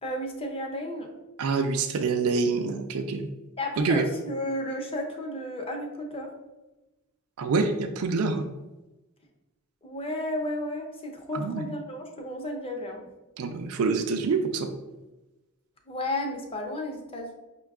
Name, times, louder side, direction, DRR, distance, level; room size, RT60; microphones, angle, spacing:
voice 1, 0.0-1.1 3.6-6.3 9.8-13.1 15.9-17.3, left 1 dB, 25° left, 2 dB, 0.7 m, -33 dB
voice 2, 1.4-3.3 3.8-4.0 7.4-8.5 11.3-11.6 13.4-14.7, right 4 dB, 70° right, 6 dB, 0.4 m, -26 dB
5.4 x 2.3 x 3.5 m, 1.1 s
head